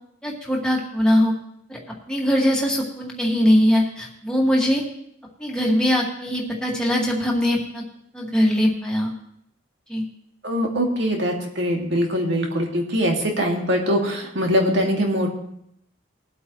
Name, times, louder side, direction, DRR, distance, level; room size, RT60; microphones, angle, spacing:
voice 1, 0.2-1.3 1.7-1.8 2.1-4.8 5.4-7.8 8.1-9.1 9.9-10.0, equal, 5° left, -3 dB, 2.0 m, -21 dB
voice 2, 10.4-15.3, equal, 65° right, 0 dB, 2.3 m, -22 dB
21.0 x 8.1 x 3.1 m, 0.74 s
head